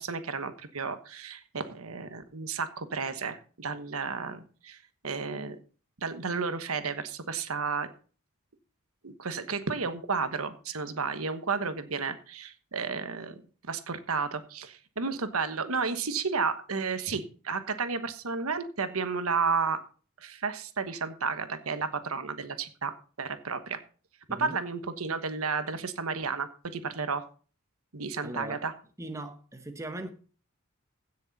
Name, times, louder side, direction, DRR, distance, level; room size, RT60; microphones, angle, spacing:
voice 1, 0.0-5.6 6.0-7.9 9.0-13.4 13.7-19.8 20.2-23.8 24.4-27.2 27.9-28.7, right 5 dB, 85° right, 1.2 m, -32 dB
voice 2, 28.2-28.7 29.0-30.1, right 1 dB, 15° right, 1.0 m, -39 dB
16.0 x 6.5 x 4.1 m
head